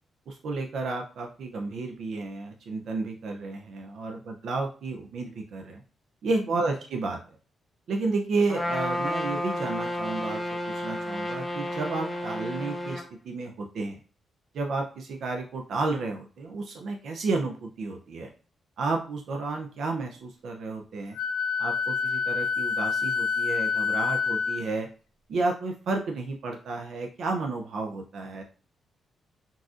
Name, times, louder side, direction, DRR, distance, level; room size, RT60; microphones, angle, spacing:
voice 1, 0.3-5.8 6.2-7.2 7.9-10.4 10.7-14.0 14.5-18.3 18.8-21.2 21.6-24.9 25.3-28.4, right 3 dB, 60° right, 2 dB, 0.4 m, -31 dB
Trumpet, 8.5-13.1, left 1 dB, 10° left, 0.5 m, -31 dB
Wind instrument woodwind instrument, 21.2-24.7, left 5 dB, 85° left, 0.5 m, -27 dB
3.9 x 2.4 x 2.4 m, 0.38 s
wide cardioid pair, 170°, 0 cm